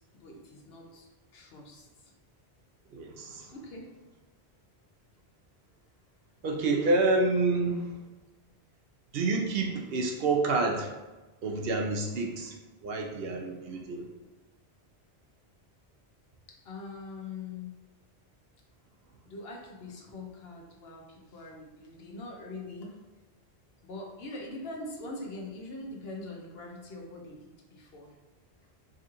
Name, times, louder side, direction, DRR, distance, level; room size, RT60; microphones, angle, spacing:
voice 1, 0.0-2.1 3.5-3.9 16.5-17.7 19.3-23.0 23.8-28.2, left 2 dB, 70° left, 0 dB, 0.9 m, -43 dB
voice 2, 2.9-3.5 6.4-8.0 9.1-11.0 11.4-12.6 12.8-14.1, right 3 dB, 70° right, 2 dB, 0.8 m, -28 dB
4.7 x 2.4 x 2.9 m, 1.1 s
omnidirectional pair, 1.1 m